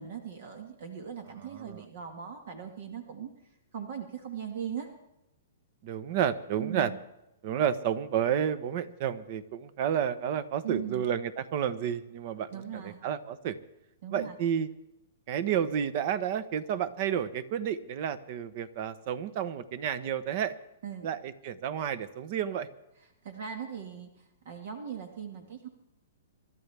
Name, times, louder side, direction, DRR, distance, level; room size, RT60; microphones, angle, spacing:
voice 1, 0.0-3.3 3.7-4.9 6.6-7.0 10.6-11.1 12.5-13.0 14.0-14.4 20.8-21.1 23.2-25.7, right 8 dB, 60° right, 5 dB, 1.7 m, -39 dB
voice 2, 1.4-1.8 5.8-6.9 7.4-13.6 14.1-14.7 15.3-20.5 21.0-22.7, right 9 dB, 45° right, 15 dB, 0.9 m, -31 dB
25.5 x 12.5 x 3.4 m, 0.90 s
hypercardioid pair, 150°, 0 cm